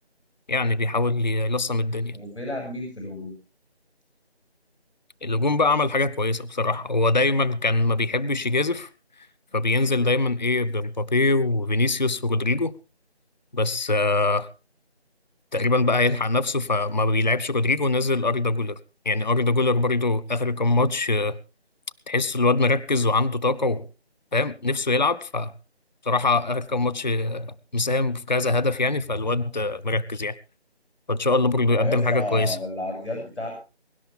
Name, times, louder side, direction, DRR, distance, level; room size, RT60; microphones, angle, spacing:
voice 1, 0.5-2.2 5.2-8.9 9.5-12.7 13.5-14.5 15.5-18.8 19.1-21.4 22.1-23.9 24.3-25.5 26.0-30.4 31.1-32.6, left 2 dB, 45° left, 0.7 m, -23 dB
voice 2, 2.1-3.3 31.7-33.5, left 2 dB, 90° left, 6.8 m, -31 dB
23.5 x 11.5 x 3.6 m
figure-of-eight pair, 170°, 32 cm